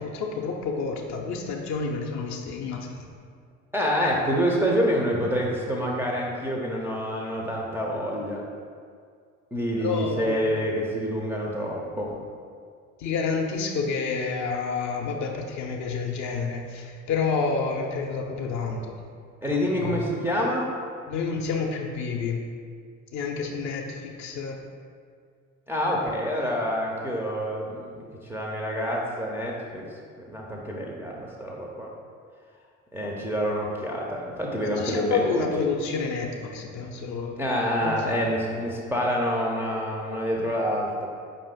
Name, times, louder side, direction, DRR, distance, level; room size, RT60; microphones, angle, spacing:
voice 1, 0.0-3.1 4.4-4.5 9.8-10.4 13.0-19.0 19.5-20.0 21.1-22.4 23.1-24.6 34.6-37.4 37.8-38.0, left 5 dB, 45° left, 2 dB, 0.5 m, -29 dB
voice 2, 3.7-8.4 9.5-12.2 19.4-20.7 25.7-29.8 30.2-31.9 32.9-35.4 37.4-41.1, equal, 5° right, -4 dB, 0.4 m, -27 dB
4.9 x 2.5 x 3.5 m, 2.1 s
figure-of-eight pair, 60°, 41 cm